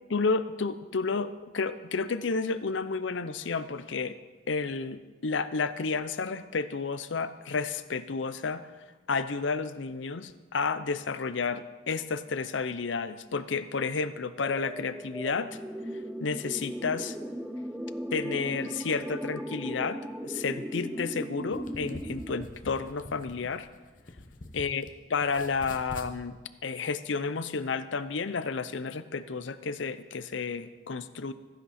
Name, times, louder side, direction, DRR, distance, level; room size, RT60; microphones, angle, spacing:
voice 1, 0.1-4.2 4.5-8.7 9.1-15.6 16.2-17.2 18.1-23.7 24.5-31.3, left 4 dB, 85° left, 13 dB, 0.6 m, -31 dB
sound 1, 14.4-22.5, equal, 5° right, 0.3 m, -37 dB
sound 2, 21.5-24.9 25.2-26.1, left 1 dB, 45° left, 0.9 m, -45 dB
14.5 x 10.5 x 4.3 m, 1.3 s
head